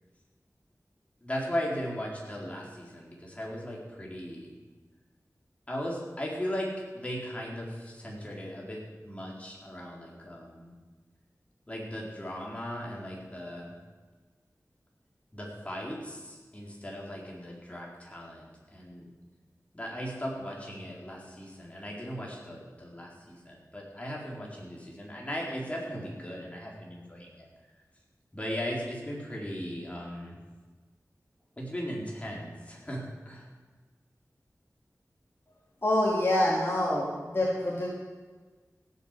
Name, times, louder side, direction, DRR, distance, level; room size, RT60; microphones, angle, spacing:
voice 1, 1.2-4.5 5.7-10.7 11.7-13.8 15.3-19.1 19.7-27.7 28.3-30.4 31.6-33.5, equal, 20° left, -3 dB, 4.2 m, -37 dB
voice 2, 35.8-37.9, left 1 dB, 40° left, -4 dB, 2.7 m, -26 dB
17.0 x 8.4 x 7.5 m, 1.4 s
wide cardioid pair, 80°, 6 cm